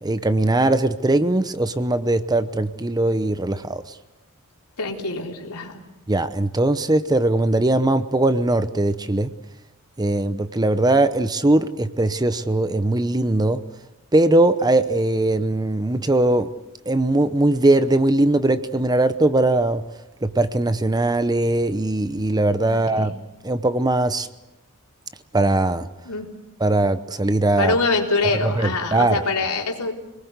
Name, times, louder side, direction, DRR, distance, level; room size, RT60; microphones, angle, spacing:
voice 1, 0.0-3.8 6.1-9.3 10.0-13.6 14.1-16.5 16.9-19.8 20.2-23.1 23.4-24.3 25.3-25.9 26.6-27.7 28.4-29.2, right 2 dB, 20° right, 12 dB, 0.8 m, -20 dB
voice 2, 4.8-5.8 22.7-23.1 26.0-26.3 27.6-29.9, left 3 dB, 90° left, 1 dB, 3.8 m, -24 dB
26.5 x 19.5 x 8.1 m, 0.98 s
head